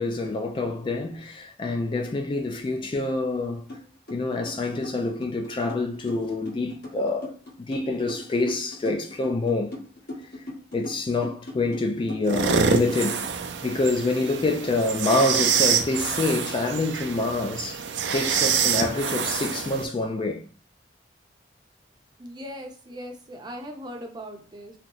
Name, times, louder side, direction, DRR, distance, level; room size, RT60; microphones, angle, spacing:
voice 1, 0.0-3.6 4.1-7.3 7.6-9.7 10.7-17.8 18.1-20.4, left 2 dB, 30° left, 0.3 m, -26 dB
sound 1, 3.7-3.8 4.1-13.3, left 1 dB, 65° left, 1.3 m, -39 dB
sound 2, 12.2-19.8, right 6 dB, 75° right, 0.4 m, -26 dB
voice 2, 22.2-24.7, equal, 25° right, 0.6 m, -39 dB
2.9 x 2.0 x 3.7 m
head